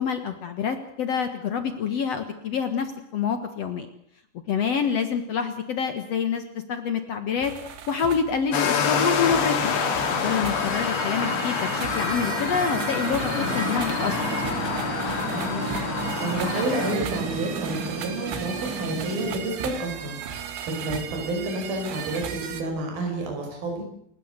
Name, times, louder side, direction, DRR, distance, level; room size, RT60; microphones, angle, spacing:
voice 1, 0.0-3.8 4.5-14.2, left 6 dB, 90° left, 7 dB, 1.4 m, -27 dB
sound 1, 7.4-22.6, right 7 dB, 70° right, 4.2 m, -36 dB
sound 2, 8.5-16.9, left 6 dB, 65° left, 4.5 m, -27 dB
sound 3, 9.2-19.3, right 3 dB, 25° right, 2.6 m, -35 dB
voice 2, 15.2-15.7 16.2-20.2 20.7-23.8, right 2 dB, 50° right, 2 dB, 7.2 m, -30 dB
29.5 x 15.5 x 8.2 m, 0.69 s
omnidirectional pair, 5.3 m